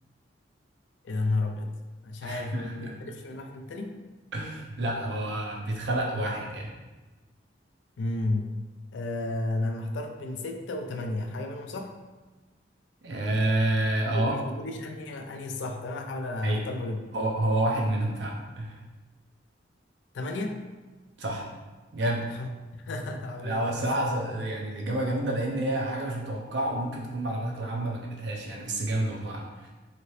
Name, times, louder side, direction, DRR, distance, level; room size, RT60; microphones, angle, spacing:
voice 1, 1.0-1.7 2.0-4.0 8.0-8.6 8.9-12.0 14.1-17.0 20.1-20.6 22.3-22.5 22.9-23.9, left 2 dB, 75° left, 4 dB, 0.4 m, -32 dB
voice 2, 2.2-3.0 4.3-6.7 13.0-14.3 16.4-16.6 17.1-18.8 21.2-21.5 21.9-22.3 23.4-29.7, right 1 dB, 65° right, -1 dB, 0.6 m, -29 dB
2.9 x 2.8 x 3.1 m, 1.2 s
head